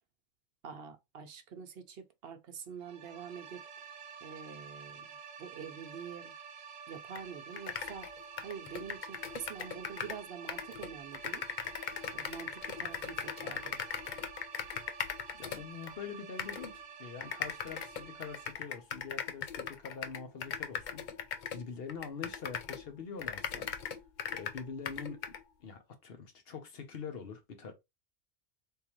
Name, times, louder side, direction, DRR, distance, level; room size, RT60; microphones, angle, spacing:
voice 1, 0.6-3.9 4.2-6.3 6.9-8.1 8.4-11.4 12.1-13.8, right 7 dB, 60° right, 0.8 m, -46 dB
sound 1, 2.8-18.5, right 6 dB, 80° right, 1.1 m, -49 dB
sound 2, 7.1-7.2 7.5-10.2 10.5-15.9 16.4-16.7 17.2-22.9 23.2-25.4, left 7 dB, 70° left, 0.4 m, -39 dB
voice 2, 15.3-21.2 21.5-23.7 24.3-25.3 25.6-27.7, left 6 dB, 50° left, 1.0 m, -44 dB
3.6 x 2.8 x 3.0 m
omnidirectional pair, 1.3 m